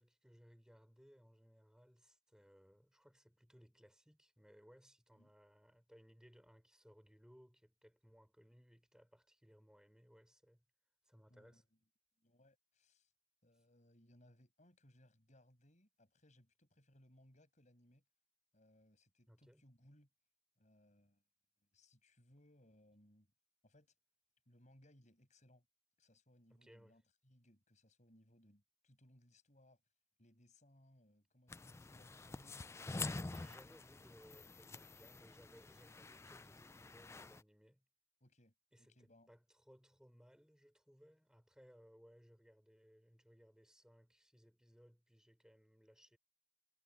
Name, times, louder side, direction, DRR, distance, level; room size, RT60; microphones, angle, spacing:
voice 1, 0.0-10.6 11.0-11.6 19.3-19.7 26.5-27.0 33.3-37.8 38.7-46.2, equal, 5° right, 4.7 m, -65 dB
voice 2, 11.3-11.7 12.2-13.1 13.4-18.0 18.5-20.1 20.6-21.2 21.6-23.3 23.6-23.9 24.5-25.7 26.0-29.8 30.2-32.7 33.0-33.8 38.2-39.3, left 1 dB, 40° left, 7.5 m, -68 dB
sound 1, 31.5-37.4, left 3 dB, 15° left, 0.3 m, -48 dB
head